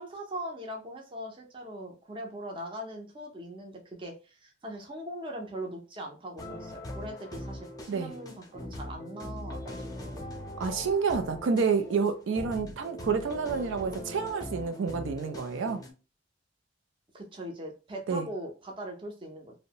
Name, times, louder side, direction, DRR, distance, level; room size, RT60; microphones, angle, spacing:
voice 1, 0.0-10.3 17.1-19.5, right 1 dB, 25° right, 0.6 m, -41 dB
sound 1, 6.4-15.9, left 1 dB, 20° left, 0.5 m, -41 dB
voice 2, 10.6-15.8 18.1-18.2, right 5 dB, 85° right, 0.4 m, -29 dB
2.6 x 2.0 x 2.8 m
head